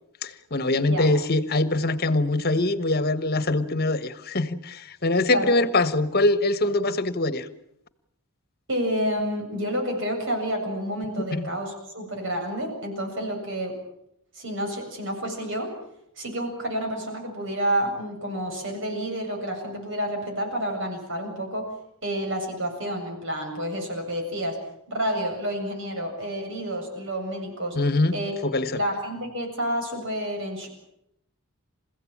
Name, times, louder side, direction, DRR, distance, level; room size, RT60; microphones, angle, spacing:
voice 1, 0.2-7.5 11.3-11.5 27.7-28.1 28.4-28.8, left 2 dB, 45° left, 12 dB, 1.4 m, -23 dB
voice 2, 8.7-13.8 14.3-15.7 16.2-21.7 22.0-24.6 24.9-27.8 28.1-28.3 28.7-30.7, equal, 55° right, 3 dB, 7.7 m, -29 dB
29.0 x 16.0 x 8.8 m, 0.80 s
head